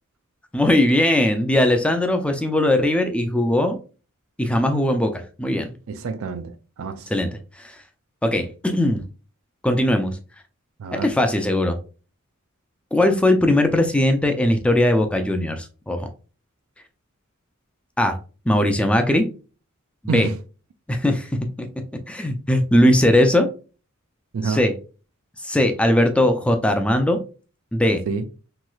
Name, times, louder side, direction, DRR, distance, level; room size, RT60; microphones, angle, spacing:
voice 1, 0.5-3.8 4.4-5.7 7.1-7.3 7.6-7.7 8.2-9.0 9.6-10.2 10.9-11.8 12.9-16.1 18.0-18.2 18.5-19.3 20.1-20.3 20.9-21.3 21.6-21.7 22.1-23.5 24.4-24.7 25.4-27.2 27.7-28.0, left 1 dB, 5° left, 0.3 m, -19 dB
voice 2, 5.9-7.1 10.8-11.1 20.1-20.4 24.3-24.6 28.1-28.3, right 4 dB, 70° right, 0.4 m, -27 dB
3.0 x 3.0 x 2.3 m
head